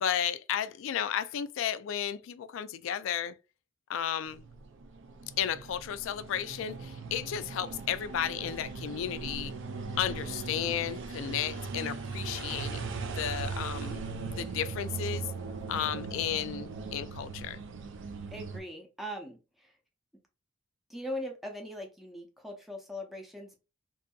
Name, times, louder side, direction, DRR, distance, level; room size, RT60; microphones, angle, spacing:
voice 1, 0.0-3.4 3.9-4.4 5.4-9.5 10.0-14.0 14.3-15.2 15.7-17.6, left 9 dB, 65° left, 0.3 m, -33 dB
sound 1, 4.3-18.6, right 4 dB, 60° right, 0.4 m, -39 dB
voice 2, 18.3-19.8 20.9-23.6, left 1 dB, ahead, 0.6 m, -40 dB
2.6 x 2.5 x 2.3 m
head